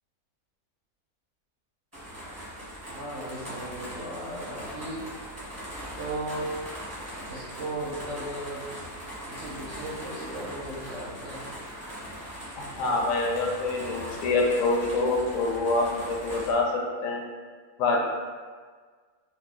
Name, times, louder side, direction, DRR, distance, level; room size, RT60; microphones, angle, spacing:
sound 1, 1.9-16.5, equal, 15° right, 0.6 m, -40 dB
voice 1, 2.9-5.1 6.0-6.5 7.3-8.6 9.3-11.4, right 1 dB, 60° right, -8 dB, 0.8 m, -36 dB
voice 2, 12.8-17.2 17.8-18.1, left 2 dB, 70° left, -1 dB, 0.9 m, -26 dB
4.7 x 2.0 x 2.7 m, 1.5 s
omnidirectional pair, 1.6 m